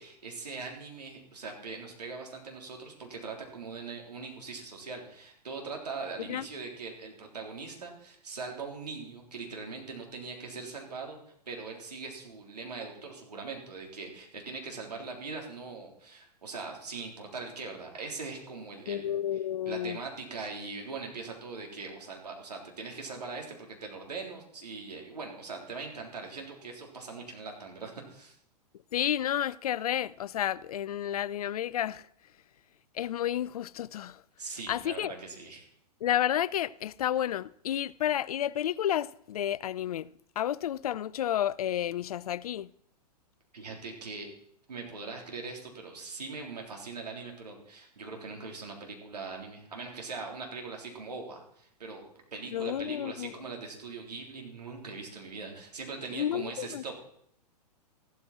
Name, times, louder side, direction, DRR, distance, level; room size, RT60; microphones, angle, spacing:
voice 1, 0.0-11.2 11.5-19.2 19.7-28.3 34.4-35.6 43.5-44.3 44.7-52.0 52.3-57.0, right 4 dB, 75° right, 3.7 m, -41 dB
voice 2, 18.9-20.0 28.9-32.1 32.9-34.2 34.7-35.1 36.0-40.1 40.4-42.7 52.5-53.3 56.1-56.8, left 11 dB, 65° left, 0.4 m, -31 dB
14.5 x 13.0 x 4.4 m
figure-of-eight pair, 105°, 21 cm